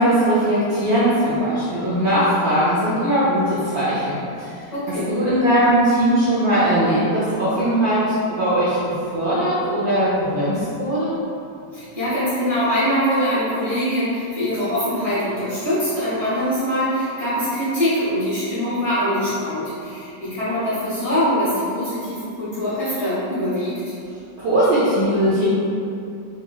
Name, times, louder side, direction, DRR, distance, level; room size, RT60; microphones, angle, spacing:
voice 1, 0.0-4.5 5.1-8.0 8.3-8.8 9.1-11.1 24.4-25.5, right 1 dB, 90° right, -10 dB, 0.6 m, -19 dB
voice 2, 4.7-5.1 11.7-23.9, equal, 25° left, -13 dB, 1.1 m, -23 dB
3.3 x 3.0 x 2.3 m, 2.6 s
omnidirectional pair, 1.9 m